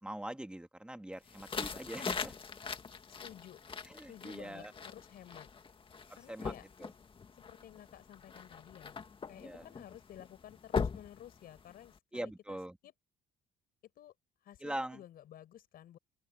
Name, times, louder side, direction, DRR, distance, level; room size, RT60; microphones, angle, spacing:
voice 1, 0.0-2.3 3.8-4.7 6.3-6.5 6.8-6.9 9.4-9.7 12.1-12.8 14.6-15.0, right 1 dB, 5° right, 2.4 m, -42 dB
sound 1, 1.3-12.0, left 5 dB, 30° left, 2.0 m, -42 dB
voice 2, 3.1-3.6 4.1-5.5 6.2-6.7 7.4-9.0 9.3-12.6 12.8-12.9 14.0-14.1 14.4-16.0, left 11 dB, 60° left, 5.2 m, -53 dB
open air
cardioid pair, 110°, 17 cm